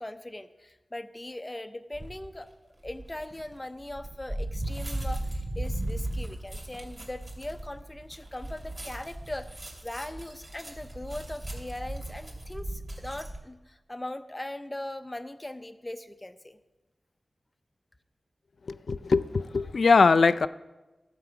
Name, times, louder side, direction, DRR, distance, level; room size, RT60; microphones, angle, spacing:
voice 1, 0.0-2.5 2.8-16.6, left 1 dB, 20° left, 10 dB, 0.6 m, -40 dB
sound 1, 1.9-2.3 2.8-13.4, right 1 dB, 30° right, 2.6 m, -37 dB
voice 2, 18.7-20.5, left 4 dB, 70° left, 14 dB, 0.3 m, -21 dB
13.0 x 4.8 x 7.0 m, 1.1 s
wide cardioid pair, 85°, 0 cm